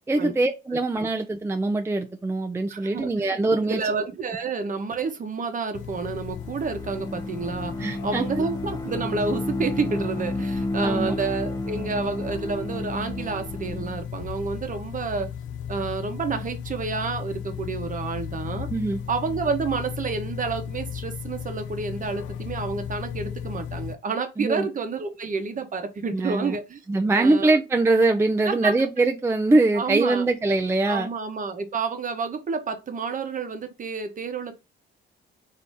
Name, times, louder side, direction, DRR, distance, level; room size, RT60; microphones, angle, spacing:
voice 1, 0.0-3.8 7.8-8.4 10.8-11.2 18.7-19.0 24.4-24.7 26.1-26.6 26.9-31.1, right 2 dB, 15° right, 0.4 m, -23 dB
voice 2, 2.7-3.3 3.6-15.3 15.7-18.7 19.1-26.8 27.1-27.6 28.5-28.7 29.7-30.2 30.8-34.5, right 4 dB, 40° right, 0.9 m, -29 dB
sound 1, 5.7-23.9, left 8 dB, 75° left, 0.4 m, -36 dB
Bowed string instrument, 6.3-14.1, left 2 dB, 20° left, 0.7 m, -32 dB
4.0 x 2.8 x 3.5 m
cardioid pair, 90°, 20 cm